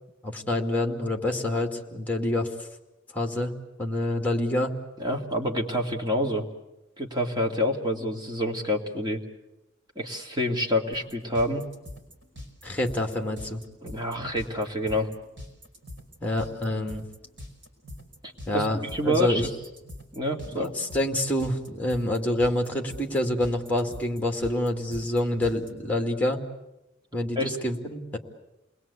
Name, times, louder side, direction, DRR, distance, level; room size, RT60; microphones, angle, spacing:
voice 1, 0.2-2.5 3.1-3.5 3.8-4.7 12.6-13.6 16.2-17.0 18.5-18.8 19.0-19.5 20.5-26.4 27.1-28.2, left 1 dB, 10° left, 4 dB, 2.4 m, -27 dB
voice 2, 5.0-6.4 7.0-9.2 10.0-11.7 13.8-15.1 18.2-19.5 20.1-20.7 27.4-27.5, left 1 dB, 25° right, 1 dB, 2.5 m, -27 dB
sound 1, 10.9-25.7, left 1 dB, 70° right, 5.2 m, -44 dB
28.5 x 20.5 x 8.4 m, 0.96 s
head